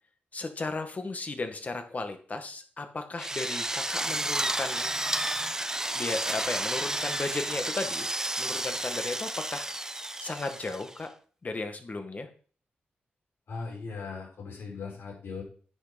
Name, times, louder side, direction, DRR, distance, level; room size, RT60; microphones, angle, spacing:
voice 1, 0.3-4.9 5.9-8.1 8.4-9.7 10.2-11.1 11.4-12.3, left 3 dB, 40° left, 7 dB, 1.9 m, -35 dB
Drill, 3.2-11.0, right 1 dB, 15° right, 0.7 m, -31 dB
voice 2, 13.5-15.4, left 4 dB, 80° left, -2 dB, 5.3 m, -38 dB
10.0 x 6.3 x 5.4 m, 0.42 s
cardioid pair, 65°, 4 cm